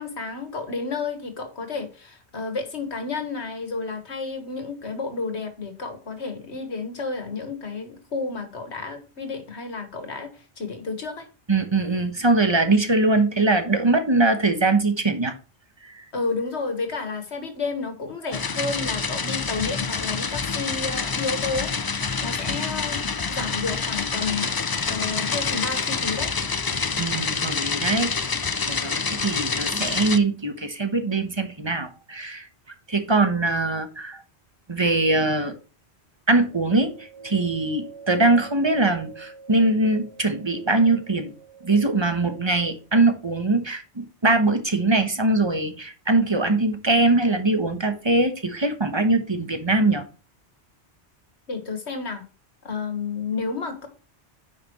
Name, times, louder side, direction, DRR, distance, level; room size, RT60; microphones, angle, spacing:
voice 1, 0.0-11.3 16.1-21.7 22.2-26.3 51.5-52.2 52.6-53.9, left 4 dB, 80° left, 2.0 m, -31 dB
voice 2, 11.5-15.3 15.8-16.0 22.5-22.6 27.0-28.1 28.6-32.5 32.9-34.2 34.7-35.5 36.3-50.0, right 2 dB, 25° right, 1.1 m, -22 dB
sound 1, 18.3-30.2, left 5 dB, 35° left, 0.3 m, -27 dB
9.3 x 5.6 x 3.1 m
omnidirectional pair, 1.1 m